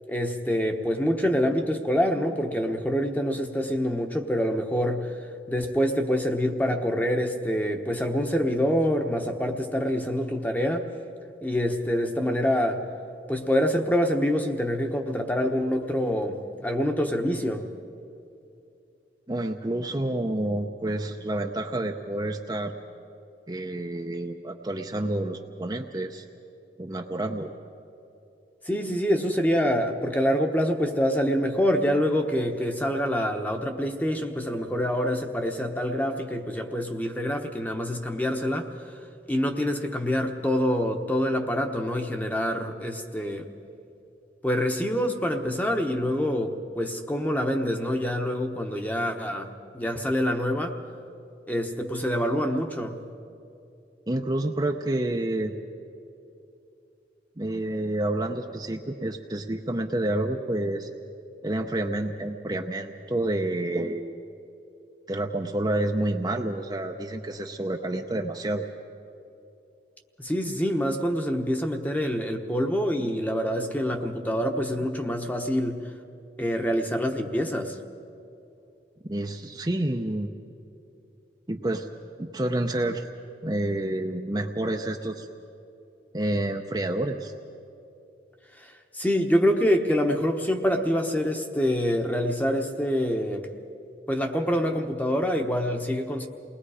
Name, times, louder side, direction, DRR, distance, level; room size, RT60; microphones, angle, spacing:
voice 1, 0.1-5.1 5.5-10.8 11.4-12.8 13.3-17.6 28.6-38.9 39.3-43.5 44.4-49.5 49.7-50.7 51.5-53.0 70.2-75.8 76.4-77.8 88.6-88.7 88.9-93.5 94.1-96.3, equal, 10° left, 4 dB, 1.1 m, -26 dB
voice 2, 19.3-22.7 23.5-26.2 26.8-27.5 54.1-55.5 57.4-60.9 61.4-64.2 65.1-68.7 79.0-80.3 81.5-81.9 82.2-83.0 83.4-85.3 86.1-87.3, right 1 dB, 25° right, 3 dB, 0.7 m, -29 dB
29.0 x 20.0 x 5.0 m, 2.7 s
head